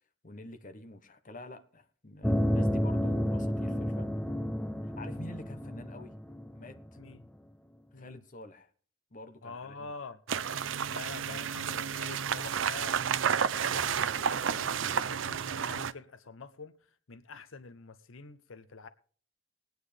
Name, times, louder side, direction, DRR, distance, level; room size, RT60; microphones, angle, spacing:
voice 1, 0.2-4.1 4.8-6.1 6.5-6.8 7.9-8.7 9.1-9.9 11.1-11.6, left 2 dB, 40° left, 1.2 m, -47 dB
sound 1, 2.2-7.1, equal, 5° left, 0.6 m, -31 dB
voice 2, 9.4-10.2 10.9-13.0 13.3-18.9, left 4 dB, 85° left, 0.8 m, -47 dB
sound 2, 10.3-15.9, right 7 dB, 70° right, 0.5 m, -31 dB
19.5 x 9.3 x 3.4 m
head